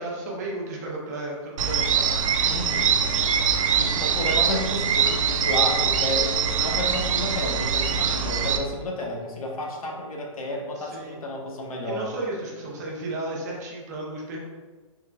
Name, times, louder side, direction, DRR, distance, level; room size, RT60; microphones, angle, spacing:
voice 1, 0.0-2.2 10.8-11.2 11.8-14.4, right 2 dB, 30° right, -2 dB, 0.6 m, -33 dB
sound 1, 1.6-8.6, right 7 dB, 75° right, 0.4 m, -23 dB
voice 2, 2.4-3.0 3.7-6.3 6.6-12.1, left 2 dB, 85° left, 0 dB, 0.9 m, -31 dB
3.8 x 3.5 x 2.2 m, 1.3 s
hypercardioid pair, 175°, 18 cm